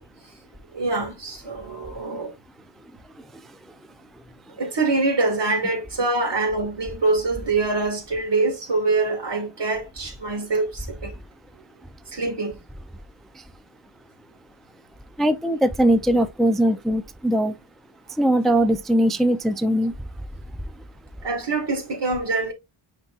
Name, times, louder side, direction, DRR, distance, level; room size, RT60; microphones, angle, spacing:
voice 1, 0.7-2.3 4.6-11.1 12.1-12.5 21.2-22.5, right 3 dB, 60° right, 2.0 m, -24 dB
voice 2, 3.2-3.7 13.3-13.4 15.2-17.6 18.1-19.9, right 1 dB, ahead, 0.5 m, -21 dB
9.7 x 4.0 x 2.5 m
wide cardioid pair, 115°, 48 cm